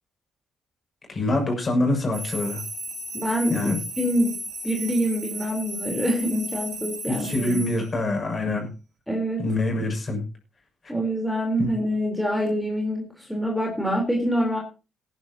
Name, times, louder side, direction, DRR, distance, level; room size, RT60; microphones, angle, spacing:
voice 1, 1.1-2.6 3.5-3.8 7.1-8.7 9.4-10.2 11.6-11.7, left 2 dB, 35° left, 2 dB, 7.0 m, -25 dB
sound 1, 2.1-7.9, right 1 dB, 60° right, 3.6 m, -35 dB
voice 2, 3.1-7.5 9.1-9.4 10.9-14.6, equal, ahead, 1 dB, 4.2 m, -26 dB
18.0 x 11.0 x 3.0 m, 0.32 s
cardioid pair, 90°, 0 cm